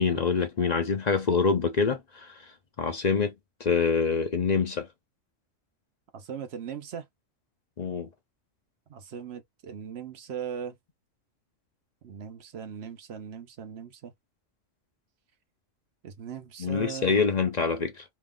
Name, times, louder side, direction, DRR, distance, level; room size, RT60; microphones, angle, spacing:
voice 1, 0.0-2.3 2.8-3.3 3.6-4.9 7.8-8.1 16.6-18.0, left 5 dB, 55° left, 0.5 m, -25 dB
voice 2, 6.1-7.0 8.9-10.7 12.0-14.1 16.0-17.2, right 8 dB, 60° right, 0.9 m, -39 dB
3.1 x 2.3 x 3.5 m
omnidirectional pair, 1.4 m